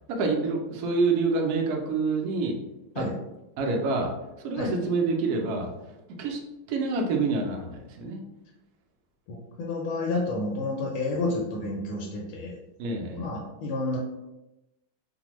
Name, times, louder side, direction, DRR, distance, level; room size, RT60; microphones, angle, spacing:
voice 1, 0.1-2.6 3.0-3.1 3.6-4.1 4.4-5.7 6.2-6.4 6.7-8.2 12.8-13.3, right 3 dB, 85° right, 2 dB, 0.8 m, -27 dB
voice 2, 9.3-12.5 13.2-14.0, left 2 dB, 90° left, -2 dB, 1.4 m, -30 dB
3.3 x 2.1 x 2.9 m, 0.97 s
omnidirectional pair, 2.2 m